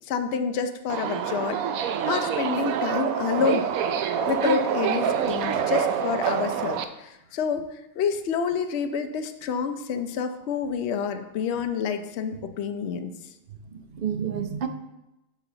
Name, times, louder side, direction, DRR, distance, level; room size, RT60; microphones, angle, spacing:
voice 1, 0.1-1.6 2.1-13.1, left 6 dB, 60° left, 7 dB, 0.8 m, -28 dB
Subway metro underground, 0.9-6.8, right 7 dB, 80° right, 1.0 m, -26 dB
voice 2, 13.5-14.7, right 8 dB, 50° right, 6 dB, 0.7 m, -30 dB
11.0 x 4.1 x 3.9 m, 0.91 s
omnidirectional pair, 1.5 m